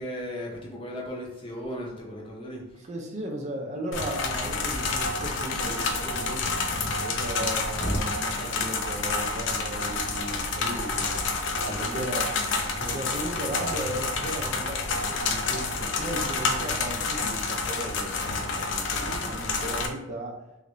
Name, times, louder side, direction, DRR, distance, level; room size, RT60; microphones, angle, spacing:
voice 1, 0.0-2.7 7.8-8.0 11.5-12.1 18.9-19.3, equal, 25° left, -2 dB, 0.7 m, -35 dB
voice 2, 2.7-6.5 7.0-11.5 11.8-12.2 12.7-20.4, right 1 dB, 35° right, 1 dB, 0.5 m, -36 dB
sound 1, 3.9-19.9, left 3 dB, 70° left, 0.4 m, -29 dB
3.2 x 2.6 x 3.0 m, 0.97 s
head